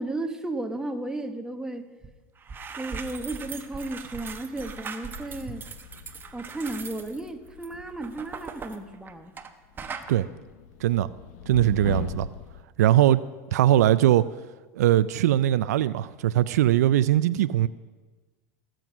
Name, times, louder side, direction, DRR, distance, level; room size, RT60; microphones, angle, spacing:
voice 1, 0.0-1.9 2.8-5.6 6.3-9.3, right 2 dB, 5° right, 5 dB, 1.3 m, -34 dB
sound 1, 2.0-2.1 2.4-9.5 9.8-10.1, right 5 dB, 25° right, 1.1 m, -39 dB
sound 2, 5.1-9.4 9.6-12.6, left 10 dB, 70° left, 0.9 m, -40 dB
voice 2, 11.5-12.3 12.8-13.2 13.5-14.3 14.8-17.7, right 13 dB, 85° right, 16 dB, 0.4 m, -20 dB
18.5 x 7.7 x 6.1 m, 1.3 s
supercardioid pair, 105°, 9 cm